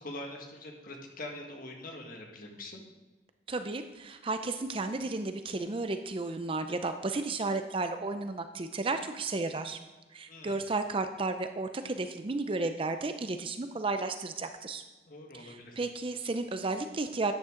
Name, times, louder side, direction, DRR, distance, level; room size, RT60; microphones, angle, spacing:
voice 1, 0.0-2.8 10.3-10.6 15.1-15.8, left 1 dB, 50° left, 1 dB, 1.8 m, -43 dB
voice 2, 3.5-9.8 10.1-14.8 15.3-17.3, right 3 dB, 30° right, 8 dB, 0.5 m, -33 dB
13.0 x 9.2 x 3.8 m, 1.2 s
head